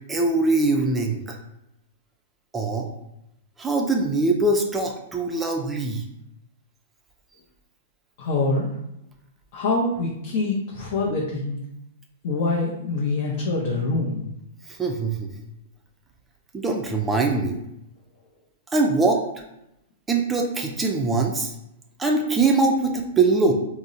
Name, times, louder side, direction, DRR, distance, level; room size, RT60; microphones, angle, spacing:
voice 1, 0.1-1.4 2.5-2.9 3.6-6.0 14.7-15.3 16.5-17.6 18.7-19.2 20.1-21.5 22.0-23.5, right 3 dB, 15° right, 1 dB, 0.3 m, -22 dB
voice 2, 8.2-8.7 9.5-11.6 12.2-14.2, left 3 dB, 55° left, -3 dB, 0.5 m, -25 dB
2.6 x 2.0 x 2.6 m, 0.83 s
hypercardioid pair, 125°, 0 cm